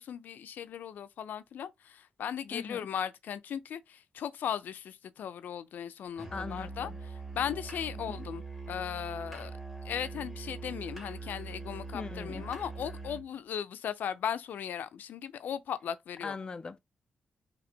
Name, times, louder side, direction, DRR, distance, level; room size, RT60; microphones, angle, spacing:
voice 1, 0.0-6.9 7.3-8.4 8.7-9.5 9.8-16.4, left 9 dB, 80° left, 0.5 m, -37 dB
voice 2, 2.5-2.9 6.3-7.0 8.1-8.3 11.9-12.5 16.2-16.8, left 4 dB, 30° left, 0.4 m, -40 dB
Musical instrument, 6.2-13.3, right 3 dB, 5° right, 1.8 m, -42 dB
4.4 x 3.1 x 4.0 m
wide cardioid pair, 170°, 3 cm